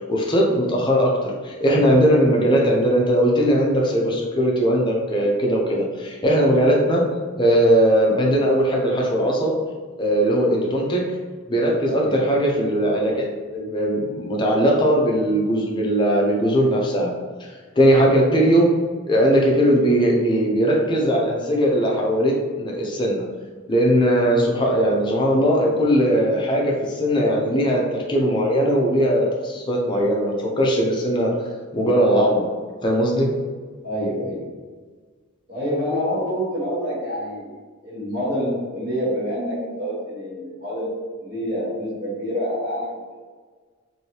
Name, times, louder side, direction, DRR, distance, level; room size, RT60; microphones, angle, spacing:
voice 1, 0.1-7.0 7.4-9.6 10.0-11.0 11.5-13.3 13.5-17.1 17.8-18.7 19.1-23.2 23.7-31.3 31.7-32.5 32.8-33.3, equal, 20° left, -1 dB, 0.5 m, -19 dB
voice 2, 11.9-12.2 33.8-34.4 35.5-37.5 37.8-40.9 41.2-42.9, equal, 45° right, -12 dB, 1.1 m, -27 dB
3.1 x 2.6 x 2.8 m, 1.5 s
head